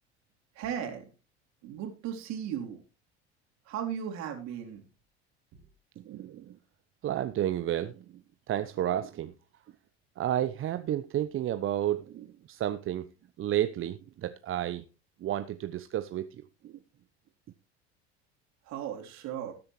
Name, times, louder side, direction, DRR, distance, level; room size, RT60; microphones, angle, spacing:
voice 1, 0.6-1.1 1.6-2.8 3.7-4.8 18.7-19.5, right 9 dB, 55° right, 3.5 m, -36 dB
voice 2, 6.0-6.6 7.0-8.0 8.5-9.3 10.2-13.1 13.4-14.8 15.2-16.3 16.6-16.8, right 12 dB, 40° right, 0.8 m, -31 dB
19.0 x 8.7 x 3.1 m
figure-of-eight pair, 70°, 34 cm